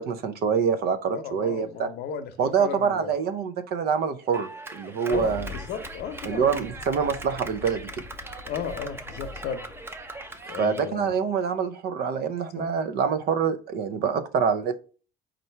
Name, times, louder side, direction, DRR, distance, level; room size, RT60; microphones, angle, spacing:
voice 1, 0.0-1.9 2.4-5.5 6.2-8.1 10.6-14.8, right 6 dB, 70° right, 11 dB, 0.6 m, -26 dB
voice 2, 1.1-3.2 5.1-6.5 8.4-9.6 10.5-11.1 12.6-12.7, left 6 dB, 75° left, 9 dB, 0.7 m, -34 dB
Clapping, 4.3-10.9, right 2 dB, 15° right, 0.6 m, -41 dB
Engine starting, 5.1-10.6, left 5 dB, 35° left, 0.7 m, -43 dB
4.3 x 2.6 x 4.3 m, 0.39 s
cardioid pair, 110°, 17 cm